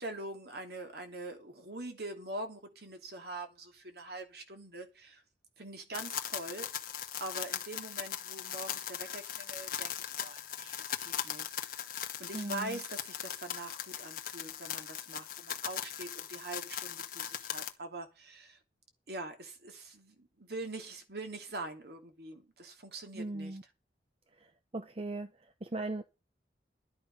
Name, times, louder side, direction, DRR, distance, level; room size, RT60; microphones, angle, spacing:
voice 1, 0.0-5.2 5.6-6.7 7.2-11.9 12.2-18.6 19.1-23.6, right 2 dB, 60° right, 2.8 m, -44 dB
sound 1, 5.9-17.7, left 10 dB, 55° left, 1.4 m, -39 dB
voice 2, 12.3-12.8 23.1-23.6 24.4-25.3 25.6-26.0, right 2 dB, 35° right, 0.9 m, -38 dB
12.0 x 9.4 x 5.4 m
head